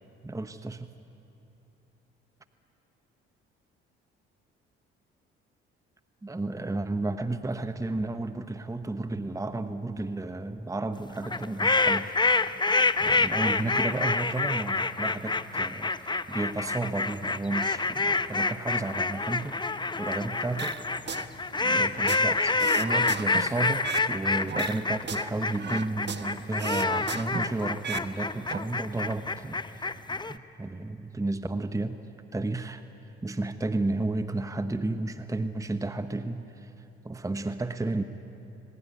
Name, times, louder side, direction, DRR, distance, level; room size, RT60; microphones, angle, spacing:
voice 1, 0.2-0.9 6.2-12.1 13.0-20.8 21.7-30.0 30.3-32.0 32.3-32.8 33.2-36.7 37.0-38.0, right 2 dB, 10° right, 10 dB, 1.0 m, -32 dB
sound 1, 11.2-30.3, left 3 dB, 15° left, 0.8 m, -27 dB
sound 2, 20.6-21.2 21.6-24.1 24.5-26.3 26.6-28.1 28.3-28.6, right 6 dB, 35° right, 1.3 m, -36 dB
21.0 x 19.5 x 9.8 m, 2.9 s
hypercardioid pair, 50°, 30 cm